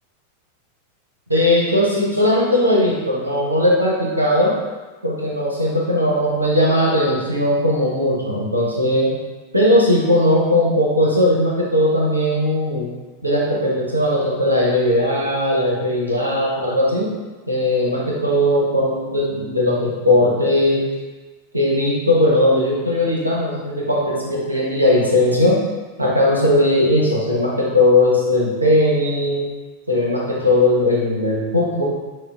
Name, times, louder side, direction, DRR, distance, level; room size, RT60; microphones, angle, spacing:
voice 1, 1.3-4.6 5.0-9.2 9.5-12.9 13.2-17.1 17.5-20.9 21.5-25.6 26.0-29.5 29.9-31.8, left 1 dB, 85° right, -4 dB, 0.8 m, -18 dB
6.4 x 2.2 x 2.4 m, 1.3 s
figure-of-eight pair, 90°, 0 cm